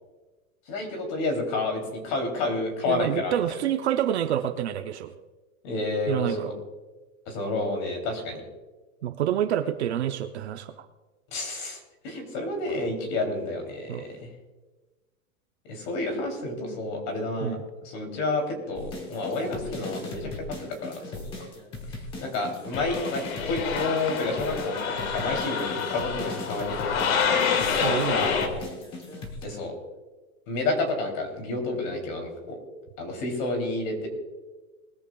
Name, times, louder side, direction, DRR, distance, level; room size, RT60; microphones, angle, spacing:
voice 1, 0.7-3.4 5.6-6.5 7.3-8.4 11.3-14.3 15.6-17.6 17.8-21.2 21.9-27.5 28.1-28.6 29.4-29.8 30.5-32.6 33.0-34.1, left 2 dB, 30° left, 3 dB, 3.2 m, -30 dB
voice 2, 2.9-5.1 6.1-6.5 9.0-10.8 13.9-14.1 17.4-17.6 27.8-28.2, right 10 dB, 50° right, 8 dB, 0.7 m, -27 dB
sound 1, 18.8-29.5, left 2 dB, 10° left, 1.0 m, -39 dB
sound 2, 22.7-28.5, left 6 dB, 75° left, 2.1 m, -27 dB
20.5 x 13.5 x 2.3 m, 1.2 s
supercardioid pair, 175°, 42 cm